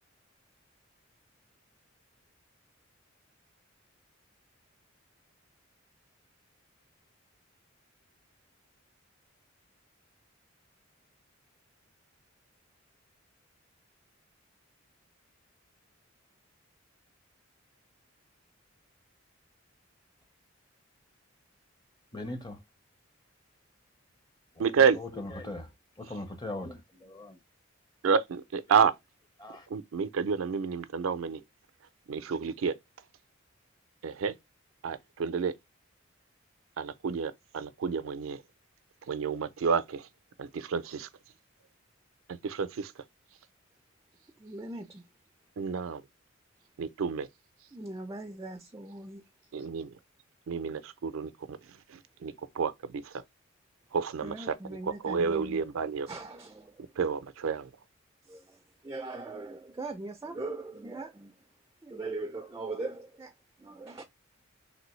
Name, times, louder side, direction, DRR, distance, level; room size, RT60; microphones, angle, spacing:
voice 1, 22.1-22.6 24.6-25.7 26.0-27.4 28.7-28.8 29.4-29.7, left 2 dB, 20° left, 0.7 m, -40 dB
voice 2, 24.6-25.0 28.0-28.9 29.7-31.4 32.1-32.7 34.0-34.3 34.8-35.5 36.8-38.4 39.1-40.1 40.4-41.1 42.4-42.9 45.6-46.0 46.8-47.3 49.5-49.9 50.5-51.6 51.9-53.0 53.9-54.3 55.0-56.1 57.0-57.7, right 6 dB, 90° right, 0.4 m, -29 dB
voice 3, 44.4-45.0 47.7-49.2 54.2-55.6 56.1-56.9 58.3-61.4 61.8-63.3 63.6-64.0, right 2 dB, 15° right, 0.3 m, -40 dB
3.3 x 2.6 x 3.0 m
head